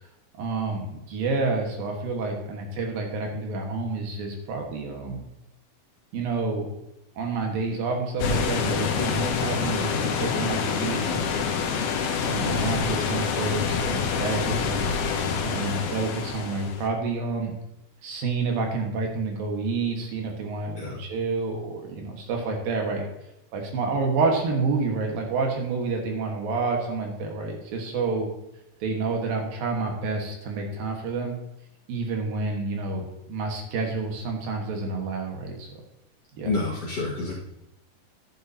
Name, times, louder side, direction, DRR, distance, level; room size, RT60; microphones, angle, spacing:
voice 1, 0.4-5.3 6.1-6.7 7.2-11.6 12.3-14.9 15.4-17.5 18.0-23.1 23.5-28.3 28.8-31.4 31.9-35.7 36.4-36.5, right 3 dB, 70° right, 1 dB, 3.1 m, -29 dB
sound 1, 8.2-16.9, left 6 dB, 80° left, 2.8 m, -26 dB
voice 2, 36.4-37.3, left 3 dB, 50° left, -5 dB, 2.2 m, -28 dB
12.0 x 9.2 x 2.8 m, 0.90 s
omnidirectional pair, 4.4 m